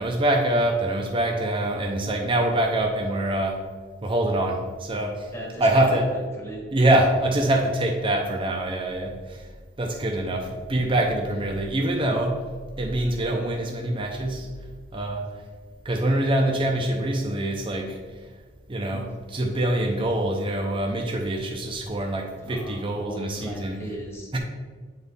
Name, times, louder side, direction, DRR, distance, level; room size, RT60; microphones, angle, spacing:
voice 1, 0.0-3.6 4.0-5.3 5.6-6.1 6.7-9.5 9.8-12.4 12.8-14.5 14.9-15.3 15.8-18.0 18.7-23.8 24.3-24.4, right 1 dB, 25° right, 1 dB, 0.5 m, -24 dB
voice 2, 5.3-6.7 10.2-10.5 11.3-11.4 18.8-19.1 22.4-24.3, equal, 15° left, -1 dB, 1.2 m, -38 dB
8.6 x 4.1 x 3.5 m, 1.5 s
head